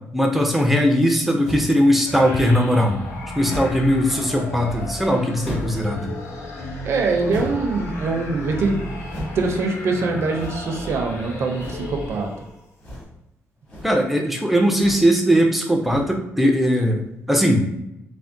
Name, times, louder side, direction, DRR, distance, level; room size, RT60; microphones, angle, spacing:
voice 1, 0.1-3.0 3.4-6.1 13.8-17.7, equal, 5° right, 2 dB, 0.4 m, -19 dB
sound 1, 1.4-1.8 2.3-2.7 3.4-3.9 5.4-5.9 7.3-7.7 9.0-9.4 10.3-10.8 11.5-11.9 12.8-13.2 13.6-14.0 14.7-15.1 15.8-16.2, equal, 35° left, 1.2 m, -34 dB
sound 2, 2.1-12.6, left 1 dB, 75° left, 0.7 m, -33 dB
voice 2, 6.8-8.9 9.3-12.3, right 3 dB, 60° right, 3 dB, 0.5 m, -23 dB
3.4 x 2.1 x 2.5 m, 0.87 s
cardioid pair, 130°, 5 cm